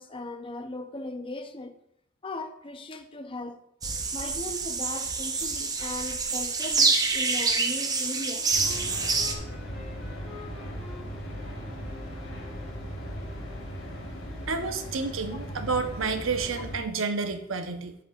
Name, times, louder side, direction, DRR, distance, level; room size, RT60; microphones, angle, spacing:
voice 1, 0.0-1.8 2.2-3.6 4.1-8.5, left 2 dB, 25° left, 0.6 m, -38 dB
sound 1, 3.8-9.3, right 4 dB, 20° right, 0.7 m, -27 dB
Wind instrument woodwind instrument, 7.8-12.9, left 3 dB, ahead, 1.5 m, -48 dB
sound 2, 8.5-16.8, equal, 75° left, 2.9 m, -38 dB
voice 2, 14.5-18.0, right 4 dB, 70° right, 0.8 m, -30 dB
10.5 x 8.4 x 2.4 m
head